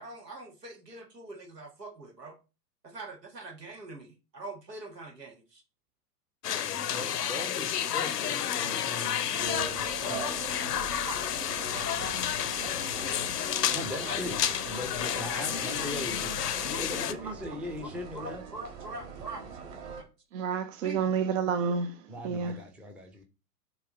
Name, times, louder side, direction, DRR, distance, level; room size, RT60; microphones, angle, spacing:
voice 1, 0.0-2.4 2.8-5.6 11.1-11.9 14.1-14.2 16.7-16.8 17.1-17.5 17.8-19.4 20.0-20.1 20.8-21.1, right 2 dB, 85° right, 1.7 m, -44 dB
sound 1, 6.4-17.1, left 10 dB, 75° left, 0.7 m, -31 dB
voice 2, 6.6-10.3 13.7-18.4 22.1-23.2, left 1 dB, 5° right, 0.5 m, -40 dB
sound 2, 9.4-20.0, right 5 dB, 35° right, 1.5 m, -42 dB
voice 3, 20.3-22.6, right 6 dB, 55° right, 0.6 m, -30 dB
7.0 x 2.9 x 5.0 m
figure-of-eight pair, 105°, 47 cm